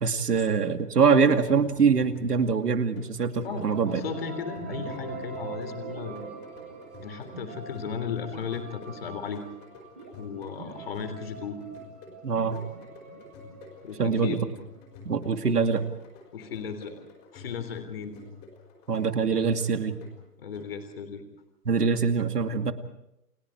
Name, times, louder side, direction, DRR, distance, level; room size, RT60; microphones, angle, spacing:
voice 1, 0.0-4.0 12.2-12.6 14.0-14.4 15.1-15.8 18.9-20.0 21.7-22.7, right 5 dB, 75° right, 7 dB, 2.5 m, -24 dB
sound 1, 1.5-21.1, left 4 dB, 15° left, 4.5 m, -49 dB
sound 2, 3.3-15.0, right 4 dB, 10° right, 0.9 m, -43 dB
voice 2, 3.4-6.3 7.0-9.4 10.2-11.6 13.8-14.4 16.3-17.0 17.3-18.2 20.4-21.2, left 6 dB, 35° left, 7 dB, 3.5 m, -35 dB
30.0 x 23.0 x 4.7 m, 0.83 s
hypercardioid pair, 170°, 47 cm